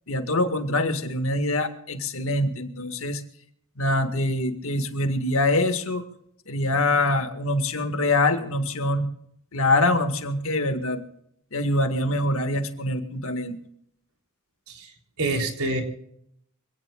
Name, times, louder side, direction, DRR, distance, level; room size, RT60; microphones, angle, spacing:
voice 1, 0.1-3.2 3.8-6.0 6.5-9.1 9.5-11.0 11.5-13.6, left 2 dB, 65° left, 7 dB, 1.9 m, -24 dB
voice 2, 14.7-15.8, right 2 dB, 80° right, 2 dB, 3.8 m, -27 dB
26.0 x 17.5 x 2.5 m, 0.70 s
head